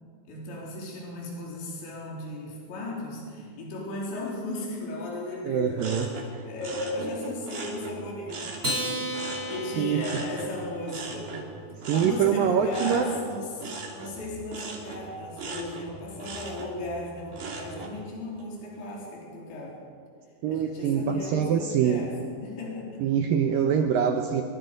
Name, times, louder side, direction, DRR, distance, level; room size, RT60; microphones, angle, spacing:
voice 1, 0.3-5.9 6.2-11.4 11.7-13.7 13.9-19.8 20.5-22.1 22.4-23.1, left 2 dB, 75° left, -2 dB, 6.0 m, -36 dB
voice 2, 5.5-6.1 9.8-10.0 11.9-13.1 20.4-22.0 23.0-24.4, right 8 dB, 75° right, 5 dB, 2.1 m, -24 dB
sound 1, 5.8-8.8 9.1-18.0 18.4-18.9, right 4 dB, 45° right, 3.7 m, -39 dB
Acoustic guitar, 8.6-11.3, equal, 15° right, 2.8 m, -33 dB
23.5 x 23.0 x 5.3 m, 2.1 s
omnidirectional pair, 5.2 m